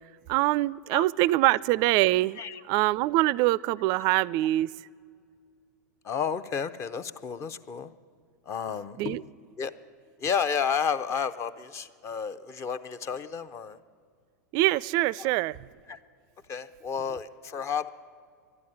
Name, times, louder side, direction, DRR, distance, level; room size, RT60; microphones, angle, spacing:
voice 1, 0.3-2.4 2.7-4.7 9.0-9.2 14.5-15.6, right 18 dB, 45° right, 23 dB, 0.3 m, -24 dB
voice 2, 6.0-7.9 8.5-9.2 9.6-9.7 10.2-13.8 15.2-15.3 15.9-16.0 16.5-17.9, left 7 dB, 30° left, 12 dB, 0.7 m, -31 dB
12.0 x 11.0 x 9.9 m, 2.1 s
hypercardioid pair, 95°, 9 cm